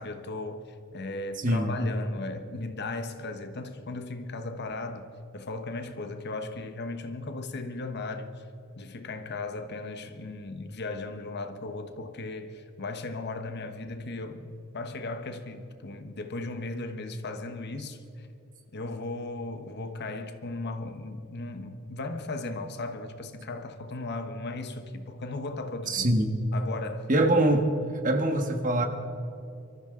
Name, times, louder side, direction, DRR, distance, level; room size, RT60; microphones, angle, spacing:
voice 1, 0.0-5.1 5.3-8.5 8.8-18.3 18.7-26.1 26.5-27.1, left 2 dB, 50° left, 1.1 m, -36 dB
voice 2, 1.4-1.7 25.9-26.3 27.1-27.7 28.0-28.9, right 1 dB, 40° right, 1.5 m, -23 dB
24.0 x 14.0 x 3.8 m
head